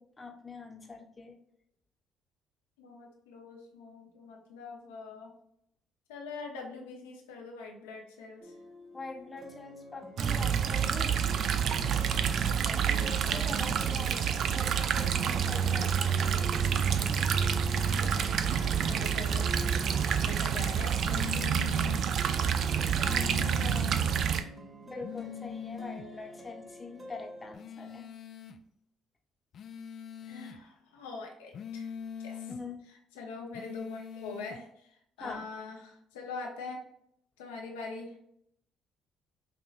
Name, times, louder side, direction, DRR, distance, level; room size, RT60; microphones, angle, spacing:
voice 1, 0.0-1.4 8.9-11.2 12.9-16.5 21.2-22.2 23.0-24.1 24.9-28.1 32.5-32.8 35.2-35.5, left 3 dB, 25° left, 3 dB, 1.0 m, -44 dB
voice 2, 2.8-5.3 6.1-8.5 12.0-13.4 17.7-19.5 20.2-21.2 30.2-31.9 32.2-32.5 33.1-36.8 37.4-38.2, left 4 dB, 85° left, 1 dB, 0.8 m, -44 dB
sound 1, 8.4-27.6, left 1 dB, 30° right, 1.1 m, -48 dB
sound 2, 10.2-24.4, right 7 dB, 60° right, 0.4 m, -28 dB
sound 3, 21.0-22.1 23.0-24.1 25.0-26.1 27.5-28.6 29.5-30.6 31.5-32.6 33.5-34.6, left 8 dB, 55° left, 0.4 m, -42 dB
5.3 x 2.8 x 2.5 m, 0.73 s
hypercardioid pair, 55°, 0 cm